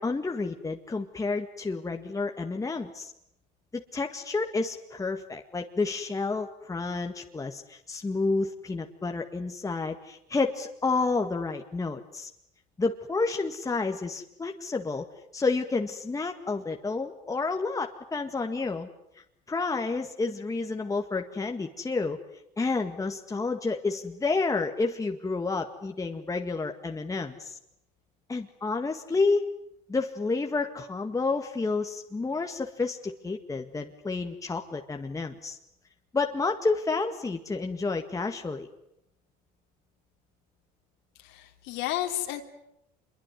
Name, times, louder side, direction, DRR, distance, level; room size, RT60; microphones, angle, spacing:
voice 1, 0.0-3.1 3.7-12.3 12.8-15.1 15.3-18.9 19.5-22.2 22.6-27.6 28.3-29.4 29.9-35.6 36.1-38.7, left 3 dB, 15° left, 4 dB, 1.9 m, -30 dB
voice 2, 41.2-42.4, left 13 dB, 75° left, 4 dB, 3.2 m, -32 dB
26.0 x 22.5 x 9.5 m, 0.80 s
supercardioid pair, 105°, 20 cm